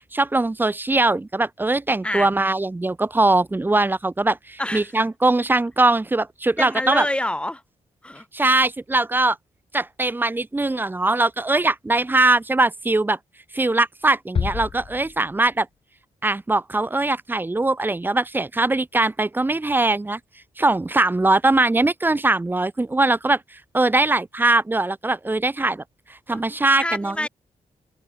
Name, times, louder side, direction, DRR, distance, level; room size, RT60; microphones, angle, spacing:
voice 1, 0.1-7.0 8.3-9.4 9.7-13.2 13.5-15.7 16.2-20.2 20.6-25.8 26.1-27.3, right 2 dB, 15° right, 0.9 m, -21 dB
voice 2, 4.6-4.9 6.6-7.6 8.0-8.3 26.3-26.4 26.8-27.3, left 1 dB, 10° left, 3.2 m, -26 dB
sound 1, 14.3-15.7, left 6 dB, 45° left, 1.3 m, -29 dB
wide cardioid pair, 120°, 13 cm